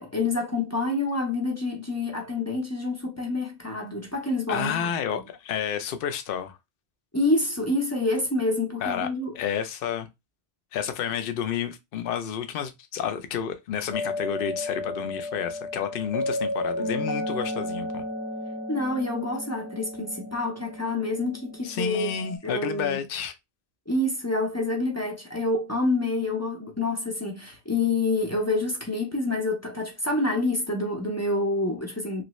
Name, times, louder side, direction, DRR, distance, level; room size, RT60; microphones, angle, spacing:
voice 1, 0.0-4.9 7.1-9.3 18.7-22.1 22.4-23.0 23.9-32.2, left 2 dB, 20° left, 0.5 m, -27 dB
voice 2, 4.5-6.6 8.8-9.1 9.3-10.1 10.7-18.0 21.6-23.3, left 8 dB, 60° left, 0.7 m, -30 dB
sound 1, 13.9-22.4, left 1 dB, 90° left, 1.2 m, -33 dB
3.1 x 2.6 x 3.0 m
omnidirectional pair, 1.2 m